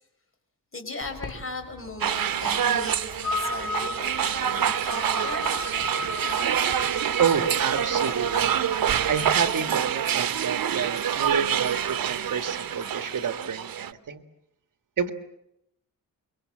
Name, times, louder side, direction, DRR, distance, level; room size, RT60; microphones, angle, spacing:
voice 1, 0.7-5.4, left 3 dB, 40° left, 5 dB, 5.6 m, -38 dB
sound 1, 1.0-9.5, left 3 dB, 70° left, 4.2 m, -36 dB
sound 2, 2.0-13.9, right 9 dB, 90° right, 1.0 m, -26 dB
voice 2, 6.7-14.2 15.0-15.1, right 6 dB, 65° right, 9 dB, 1.9 m, -29 dB
26.5 x 23.5 x 7.6 m, 0.81 s
wide cardioid pair, 130°, 34 cm